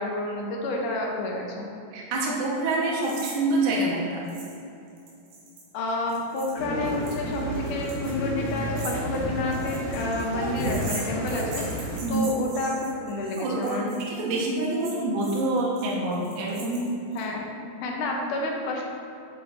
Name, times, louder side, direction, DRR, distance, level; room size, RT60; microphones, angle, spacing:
voice 1, 0.0-1.7 5.7-13.9 17.2-17.5 17.8-18.8, left 2 dB, 75° left, 0 dB, 2.2 m, -30 dB
voice 2, 1.9-4.2 12.0-12.3 13.4-16.9, right 2 dB, 70° right, -4 dB, 2.6 m, -26 dB
sound 1, 3.0-3.4 3.6-3.7 4.3-4.6 4.9-17.2, right 3 dB, 85° right, 2.9 m, -42 dB
sound 2, 6.6-12.0, right 1 dB, 55° left, 1.4 m, -31 dB
8.3 x 7.4 x 2.6 m, 2.7 s
omnidirectional pair, 3.9 m